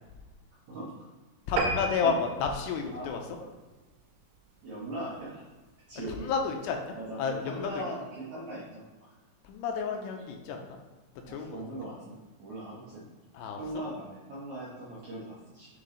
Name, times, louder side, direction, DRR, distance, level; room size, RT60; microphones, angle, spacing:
voice 1, 1.5-3.2 6.1-7.8 9.4-10.6 11.3-11.6 13.3-13.6, left 5 dB, 80° left, 3 dB, 2.6 m, -31 dB
sound 1, 1.6-4.3 4.8-5.0 5.4-5.5 5.8-5.9 6.2-6.3, right 4 dB, 90° right, 2.9 m, -34 dB
voice 2, 4.6-5.4 5.9-6.3 6.9-8.8 11.3-13.0 13.5-15.7, right 1 dB, 70° right, -8 dB, 1.8 m, -39 dB
7.4 x 3.9 x 3.8 m, 1.3 s
omnidirectional pair, 5.0 m